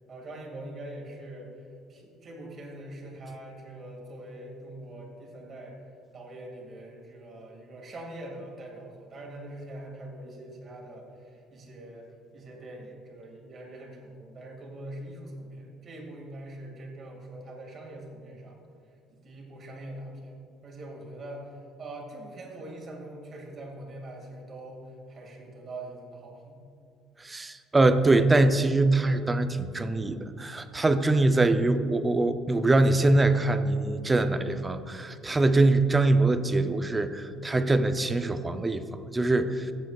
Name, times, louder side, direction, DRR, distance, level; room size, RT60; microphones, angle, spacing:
voice 1, 0.1-5.8 6.1-18.6 19.2-26.6, right 1 dB, 35° right, -1 dB, 2.1 m, -43 dB
voice 2, 27.2-38.8 39.1-39.7, right 2 dB, 15° right, 9 dB, 0.5 m, -23 dB
15.5 x 8.2 x 2.4 m, 2.5 s
cardioid pair, 135°, 0 cm